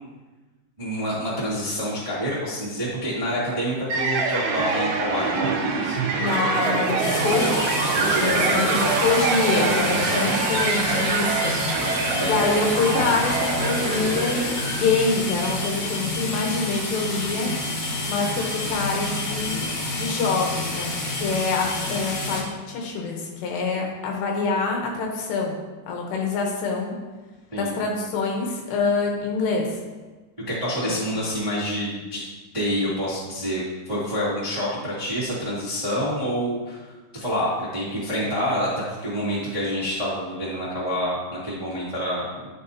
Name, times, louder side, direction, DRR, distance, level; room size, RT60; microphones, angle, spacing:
voice 1, 0.8-6.0 6.3-6.4 7.8-8.9 9.5-10.2 12.1-12.5 27.5-27.7 30.5-32.2 32.5-42.2, equal, 15° right, -10 dB, 1.1 m, -27 dB
sound 1, 3.9-15.0, right 4 dB, 70° right, 2.9 m, -25 dB
sound 2, 6.0-9.6 13.4-13.6, right 5 dB, 90° right, 2.9 m, -31 dB
voice 2, 6.2-7.7 8.2-11.6 12.2-17.6 18.1-25.6 25.9-26.9 27.5-29.8 30.9-31.0, left 4 dB, 75° left, 0 dB, 3.1 m, -26 dB
sound 3, 7.0-22.4, left 2 dB, 50° left, 2.2 m, -29 dB
12.0 x 5.8 x 2.8 m, 1.2 s
omnidirectional pair, 5.2 m